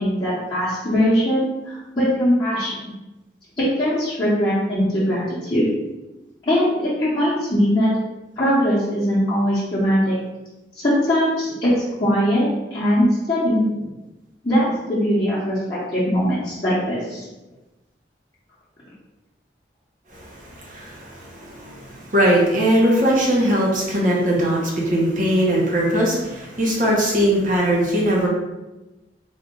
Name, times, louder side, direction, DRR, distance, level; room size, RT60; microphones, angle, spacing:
voice 1, 0.0-2.9 3.6-5.7 6.5-7.9 8.4-10.2 10.8-13.7 14.4-17.3, equal, 30° left, -12 dB, 0.9 m, -21 dB
voice 2, 20.1-28.3, right 1 dB, 45° right, -3 dB, 1.0 m, -20 dB
3.6 x 2.4 x 3.7 m, 1.0 s
head